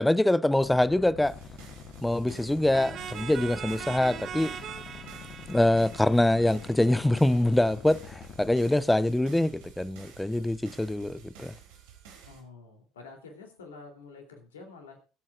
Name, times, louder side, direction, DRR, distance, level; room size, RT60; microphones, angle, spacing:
voice 1, 0.0-1.3 2.0-4.6 5.5-11.5, left 1 dB, 10° left, 0.7 m, -24 dB
sound 1, 0.6-8.5, left 7 dB, 45° left, 1.2 m, -45 dB
sound 2, 1.2-12.4, right 7 dB, 65° right, 3.1 m, -52 dB
sound 3, 2.7-7.3, right 9 dB, 45° right, 0.7 m, -41 dB
voice 2, 12.2-15.0, left 4 dB, 75° left, 3.1 m, -48 dB
22.5 x 8.6 x 2.5 m
figure-of-eight pair, 60°, 0 cm